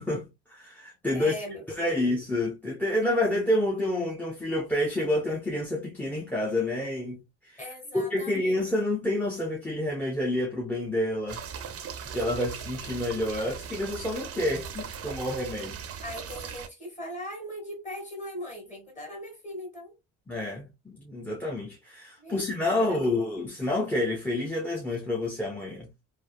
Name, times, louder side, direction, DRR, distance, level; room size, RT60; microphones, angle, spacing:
voice 1, 0.0-1.3 1.8-7.6 7.9-11.4 12.1-15.8 20.3-25.9, left 1 dB, 5° left, 0.7 m, -29 dB
voice 2, 1.1-2.1 7.6-8.5 16.0-20.0 22.2-23.1, equal, 25° left, 1.8 m, -40 dB
sound 1, 11.3-16.7, right 7 dB, 50° right, 0.6 m, -39 dB
3.1 x 2.1 x 2.2 m
cardioid pair, 90°, 30 cm